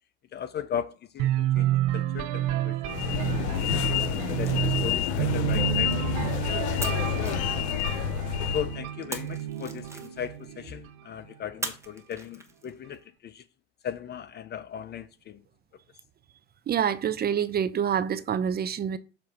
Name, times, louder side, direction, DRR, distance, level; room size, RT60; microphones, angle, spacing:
voice 1, 0.3-2.9 3.5-6.0 7.0-7.3 8.5-13.5 13.8-15.4, left 8 dB, 30° left, 0.4 m, -37 dB
sound 1, 1.2-11.0, right 12 dB, 65° right, 0.8 m, -30 dB
sound 2, 2.9-8.8, left 10 dB, 75° left, 0.6 m, -28 dB
sound 3, 4.0-6.3 6.8-8.4 9.1-10.5 11.6-13.0, right 2 dB, 10° right, 1.1 m, -41 dB
voice 2, 16.7-19.0, right 8 dB, 30° right, 0.5 m, -27 dB
7.3 x 2.5 x 5.7 m
hypercardioid pair, 75°, 34 cm